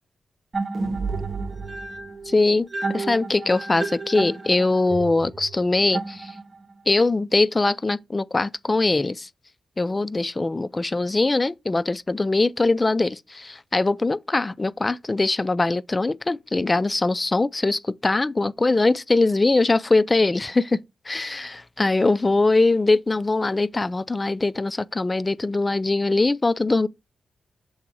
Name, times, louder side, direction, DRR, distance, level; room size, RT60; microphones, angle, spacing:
sound 1, 0.5-6.7, right 3 dB, 40° right, 1.2 m, -31 dB
voice 1, 2.3-6.3 6.9-9.3 9.8-20.8 21.1-26.9, left 3 dB, 25° left, 0.4 m, -22 dB
7.1 x 3.5 x 4.6 m
cardioid pair, 70°, 0 cm